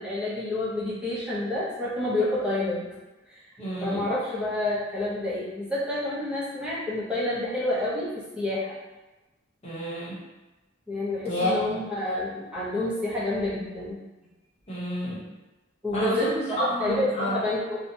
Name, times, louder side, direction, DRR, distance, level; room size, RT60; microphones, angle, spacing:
voice 1, 0.0-2.9 3.3-3.4 3.8-8.8 10.9-14.0 15.8-17.8, left 1 dB, 5° right, -8 dB, 0.6 m, -29 dB
voice 2, 3.6-4.1 9.6-10.2 11.3-11.5 14.7-15.2 15.9-17.4, equal, 30° left, -8 dB, 0.9 m, -29 dB
2.7 x 2.2 x 2.7 m, 1.1 s
head